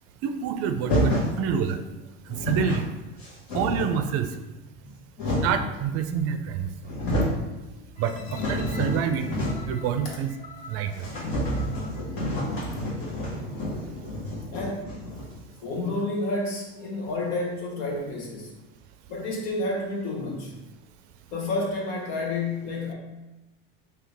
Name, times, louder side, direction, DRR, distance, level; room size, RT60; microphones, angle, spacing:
voice 1, 0.2-1.8 2.4-2.9 3.5-4.3 5.4-6.7 8.0-9.3 9.7-10.3 10.7-11.0, right 7 dB, 50° right, 8 dB, 0.4 m, -27 dB
sound 1, 0.8-1.4 2.0-2.1 2.3-2.8 3.2-4.1 4.7-5.7 6.5-6.6 6.8-7.4 7.8-9.8 10.1-10.2 10.5-10.6 10.9-15.5, equal, 60° left, 1.4 m, -29 dB
sound 2, 8.0-12.9 13.5-13.6, left 4 dB, 25° left, 0.5 m, -47 dB
voice 2, 14.5-15.0 15.6-18.5 19.1-20.5 21.3-22.9, left 2 dB, 80° left, 0 dB, 1.1 m, -30 dB
3.9 x 2.8 x 3.4 m, 1.0 s
supercardioid pair, 125°, 31 cm